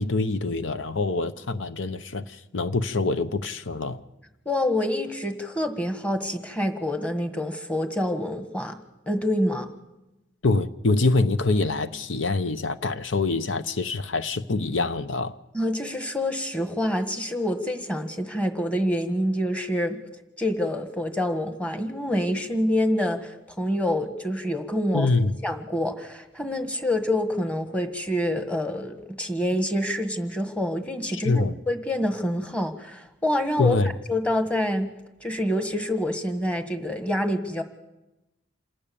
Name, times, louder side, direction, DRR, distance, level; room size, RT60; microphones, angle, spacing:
voice 1, 0.0-4.0 10.4-15.3 24.9-25.4 31.2-31.5 33.6-33.9, left 3 dB, 80° left, 0.9 m, -25 dB
voice 2, 4.4-8.7 9.1-9.7 15.5-20.0 20.4-25.1 25.4-33.8 34.1-34.9 35.2-37.6, left 1 dB, 5° left, 1.6 m, -27 dB
27.5 x 19.0 x 7.1 m
head